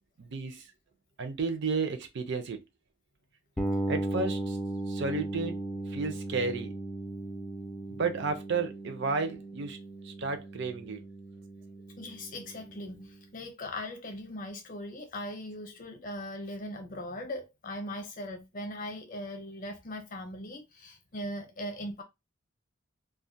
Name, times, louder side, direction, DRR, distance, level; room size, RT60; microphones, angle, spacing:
voice 1, 0.2-0.6 1.2-2.6 3.9-4.6 4.9-5.6 5.9-6.7 7.9-9.8 10.0-11.0, right 4 dB, 60° right, 0.5 m, -32 dB
sound 1, 3.6-13.3, right 2 dB, 5° left, 0.3 m, -37 dB
voice 2, 12.0-13.1 13.3-22.0, left 1 dB, 45° left, 0.6 m, -39 dB
2.3 x 2.1 x 2.6 m
head